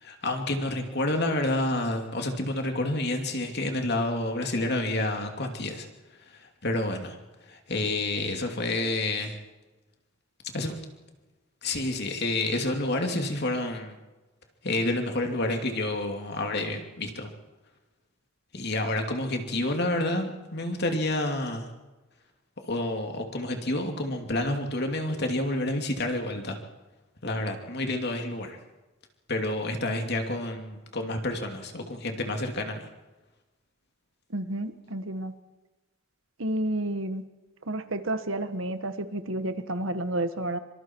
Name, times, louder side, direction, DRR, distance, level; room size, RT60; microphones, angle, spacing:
voice 1, 0.0-5.9 6.4-7.2 7.5-9.3 10.5-10.8 11.6-14.0 14.6-17.3 18.5-21.7 22.6-26.6 27.2-28.6 29.3-32.8, left 2 dB, 55° left, 4 dB, 2.7 m, -29 dB
voice 2, 34.3-35.3 36.4-37.2 37.7-40.6, right 1 dB, 70° right, 10 dB, 1.4 m, -30 dB
25.0 x 25.0 x 4.6 m, 1.2 s
head